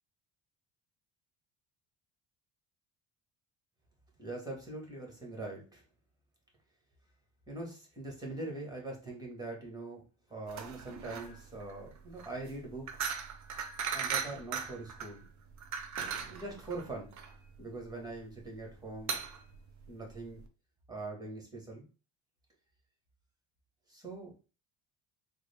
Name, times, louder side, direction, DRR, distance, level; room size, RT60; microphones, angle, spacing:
voice 1, 4.2-5.8 7.5-10.0 10.3-13.0 13.9-15.3 16.3-17.1 17.6-19.2 19.9-20.4 20.9-21.8 23.9-24.3, right 2 dB, 10° right, 0 dB, 1.5 m, -42 dB
sound 1, 10.5-20.5, right 6 dB, 40° right, 0.6 m, -39 dB
3.6 x 2.2 x 3.4 m, 0.33 s
cardioid pair, 115°, 47 cm